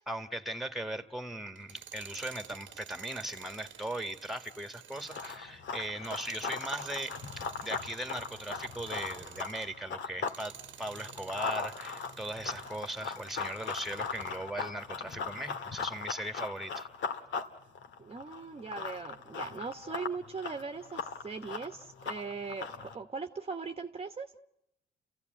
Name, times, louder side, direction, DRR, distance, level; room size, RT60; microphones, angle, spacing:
voice 1, 0.1-16.9, right 1 dB, ahead, 8 dB, 1.8 m, -39 dB
Tools, 1.6-9.8 10.2-14.4, right 10 dB, 70° right, 1.2 m, -51 dB
Run, 4.9-10.4 10.7-23.0, left 5 dB, 70° left, 1.9 m, -39 dB
voice 2, 18.0-24.3, right 5 dB, 30° right, 7 dB, 1.2 m, -40 dB
30.0 x 15.5 x 9.3 m, 0.82 s
cardioid pair, 90°, 20 cm